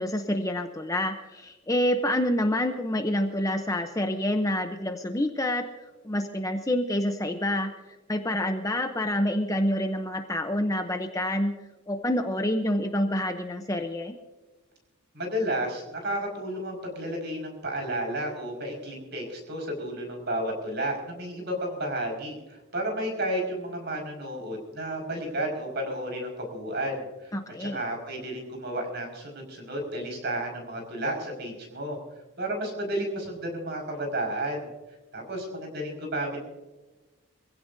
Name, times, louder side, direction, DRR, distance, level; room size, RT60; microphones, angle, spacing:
voice 1, 0.0-5.6 6.0-7.7 8.1-11.5 11.9-14.2 27.3-27.8, left 1 dB, 15° left, 6 dB, 0.8 m, -27 dB
voice 2, 15.1-27.3 27.6-32.0 32.4-34.7 35.1-36.5, right 1 dB, 50° right, 2 dB, 5.4 m, -32 dB
24.5 x 16.0 x 2.7 m, 1.2 s
head